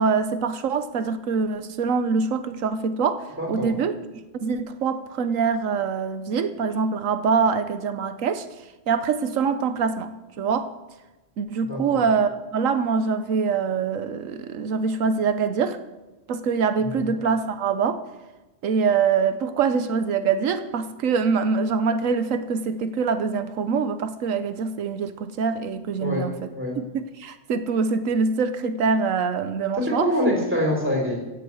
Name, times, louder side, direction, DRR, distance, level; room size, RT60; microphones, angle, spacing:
voice 1, 0.0-4.0 4.4-8.5 8.9-10.7 11.4-15.8 16.3-18.0 18.6-30.1, right 5 dB, 85° right, 11 dB, 1.2 m, -24 dB
voice 2, 3.4-3.7 11.6-12.0 16.8-17.1 26.0-26.3 26.5-26.8 29.8-31.2, equal, 10° right, 0 dB, 4.7 m, -25 dB
16.0 x 8.5 x 7.9 m, 1.1 s
omnidirectional pair, 1.3 m